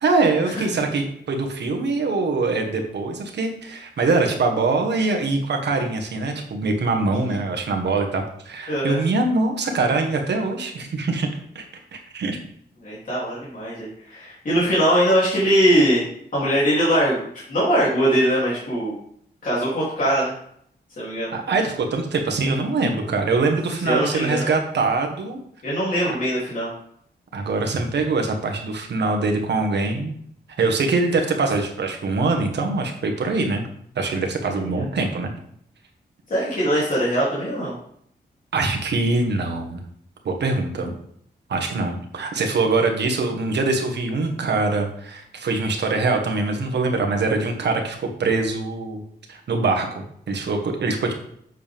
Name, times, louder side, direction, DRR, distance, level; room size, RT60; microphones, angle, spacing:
voice 1, 0.0-11.3 11.5-11.6 11.9-12.4 21.3-25.4 27.3-30.1 30.6-33.6 33.9-35.3 38.5-39.8 40.2-40.9 41.5-49.0 49.3-51.1, right 3 dB, 75° right, 3 dB, 1.5 m, -23 dB
voice 2, 8.7-9.0 12.8-16.0 16.3-19.0 19.4-20.3 21.0-21.3 23.8-24.6 25.6-26.7 34.5-34.8 36.3-37.7, equal, 50° left, -8 dB, 3.1 m, -21 dB
8.4 x 6.8 x 3.6 m, 0.67 s
wide cardioid pair, 155°, 18 cm